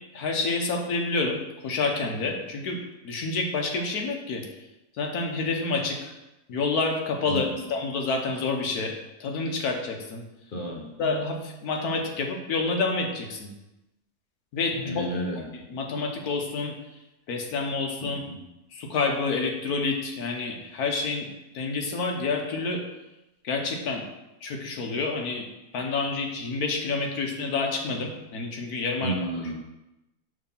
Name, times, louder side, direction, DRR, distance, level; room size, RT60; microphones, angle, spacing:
voice 1, 0.1-4.4 5.0-6.1 6.5-8.9 9.2-10.2 11.0-13.5 14.5-15.1 15.5-16.7 17.3-18.2 18.7-21.3 21.5-22.8 23.4-24.0 24.4-25.5 25.7-29.2, left 3 dB, 80° left, 1 dB, 1.4 m, -28 dB
voice 2, 7.3-7.6 10.5-10.8 14.7-15.4 18.0-18.4 29.0-29.5, right 1 dB, 35° left, -2 dB, 1.3 m, -31 dB
6.4 x 3.2 x 5.3 m, 0.95 s
omnidirectional pair, 1.6 m